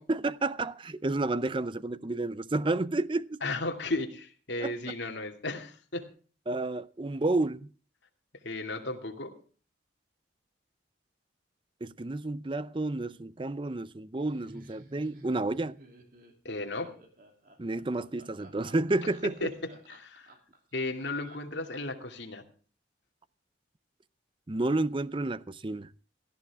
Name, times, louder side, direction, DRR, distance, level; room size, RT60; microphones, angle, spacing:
voice 1, 0.1-3.4 4.6-4.7 6.5-7.7 11.8-15.8 17.6-19.5 24.5-25.9, right 2 dB, 25° right, 0.5 m, -30 dB
voice 2, 3.4-6.1 8.4-9.3 16.4-16.9 19.2-19.5 19.9-20.3 20.7-22.4, left 2 dB, 65° left, 2.5 m, -34 dB
Laughter, 14.2-22.0, right 1 dB, 45° right, 3.0 m, -53 dB
17.5 x 13.5 x 3.5 m
head